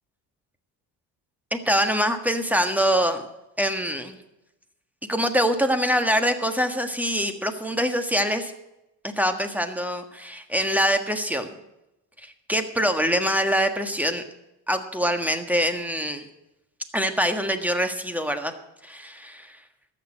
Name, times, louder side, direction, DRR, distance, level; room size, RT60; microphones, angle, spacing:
voice 1, 1.5-3.3 3.6-4.2 5.1-8.5 9.2-11.5 12.2-14.2 14.7-16.2 16.9-18.5 18.8-19.6, equal, 5° right, 7 dB, 1.5 m, -24 dB
13.5 x 6.7 x 9.0 m, 0.92 s
cardioid pair, 95°, 43 cm